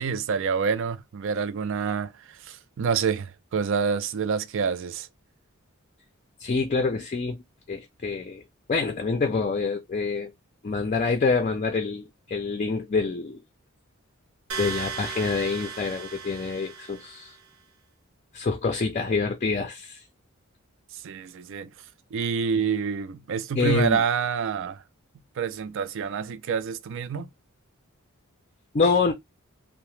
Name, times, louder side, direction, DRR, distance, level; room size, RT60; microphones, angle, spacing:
voice 1, 0.0-5.1 21.0-21.7 22.1-24.8 25.4-27.3, right 6 dB, 60° right, 0.4 m, -27 dB
voice 2, 6.4-7.4 7.7-8.4 8.7-10.3 10.6-13.4 14.6-17.3 18.3-20.0 23.6-24.0 28.7-29.1, left 4 dB, 35° left, 0.4 m, -26 dB
sound 1, 14.5-17.4, right 5 dB, 80° right, 0.9 m, -36 dB
2.8 x 2.0 x 3.1 m
head